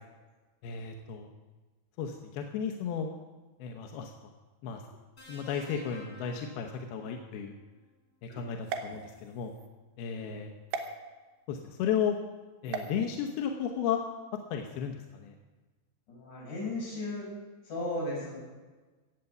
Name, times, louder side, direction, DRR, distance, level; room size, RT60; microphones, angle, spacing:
voice 1, 0.6-1.3 2.0-3.1 3.6-4.1 4.6-4.8 5.3-7.5 8.2-9.5 10.0-10.5 11.5-12.2 12.6-14.0 14.5-15.3, left 7 dB, 75° left, 3 dB, 2.4 m, -34 dB
sound 1, 5.2-7.4 8.7-9.0, left 1 dB, 20° left, 5.9 m, -52 dB
sound 2, 8.6-9.7 10.7-10.9 12.7-12.9, right 5 dB, 75° right, 3.4 m, -37 dB
voice 2, 16.1-17.3 17.7-18.3, left 2 dB, 40° left, -3 dB, 6.8 m, -35 dB
16.5 x 8.3 x 7.9 m, 1.3 s
omnidirectional pair, 5.5 m